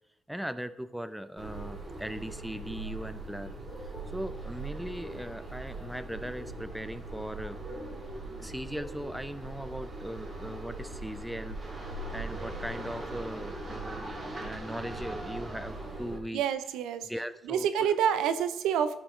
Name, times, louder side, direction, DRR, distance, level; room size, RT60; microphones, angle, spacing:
voice 1, 0.3-3.6 3.8-7.6 8.4-16.4 17.0-17.9, equal, ahead, 12 dB, 0.4 m, -39 dB
sound 1, 1.4-16.2, right 2 dB, 30° right, 2.5 m, -40 dB
voice 2, 16.3-17.1 17.5-19.0, right 8 dB, 90° right, 11 dB, 0.5 m, -27 dB
11.5 x 6.2 x 3.2 m, 0.92 s
cardioid pair, 90°, 0 cm